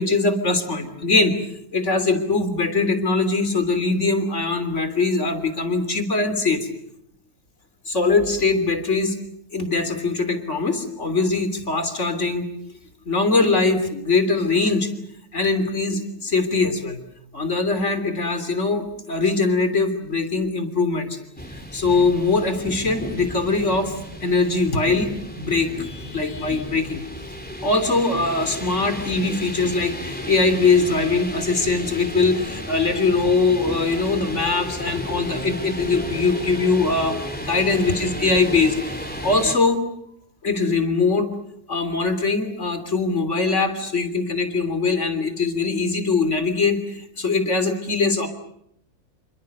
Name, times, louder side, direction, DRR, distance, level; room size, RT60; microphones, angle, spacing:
voice 1, 0.0-1.4 1.7-6.7 7.9-9.2 9.5-12.4 13.1-14.9 15.3-17.0 17.3-21.2 21.5-23.9 24.2-27.1 27.6-38.8 39.2-39.8 40.4-41.3 41.7-48.3, left 3 dB, 45° left, 10 dB, 3.6 m, -22 dB
sound 1, 21.3-39.5, equal, 5° left, 3.5 m, -33 dB
28.0 x 26.0 x 6.8 m, 0.73 s
omnidirectional pair, 1.7 m